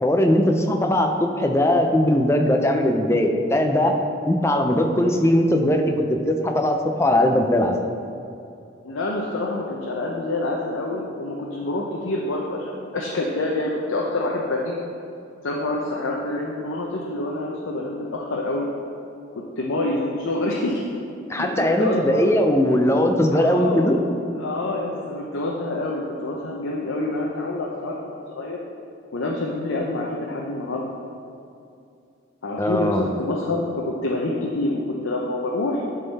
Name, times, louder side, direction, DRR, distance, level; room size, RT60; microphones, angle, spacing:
voice 1, 0.0-3.9 4.2-7.7 21.3-24.0 32.6-33.0, left 1 dB, 15° left, 4 dB, 0.5 m, -20 dB
voice 2, 8.8-14.8 15.4-18.7 19.6-20.8 21.4-22.3 23.3-24.0 24.4-28.6 29.1-30.9 32.4-35.8, left 2 dB, 85° left, -2 dB, 0.7 m, -27 dB
11.0 x 3.9 x 4.1 m, 2.5 s
head